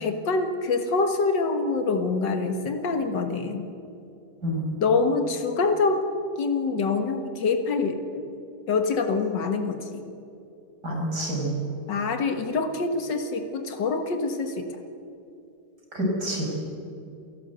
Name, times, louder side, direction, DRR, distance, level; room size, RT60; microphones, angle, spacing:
voice 1, 0.0-3.7 4.8-6.0 6.4-8.2 8.7-10.0 11.9-14.7, left 4 dB, 90° left, 6 dB, 2.1 m, -25 dB
voice 2, 10.8-11.5 15.9-16.5, equal, 65° right, -1 dB, 5.7 m, -27 dB
29.0 x 12.0 x 8.0 m, 2.6 s
omnidirectional pair, 1.9 m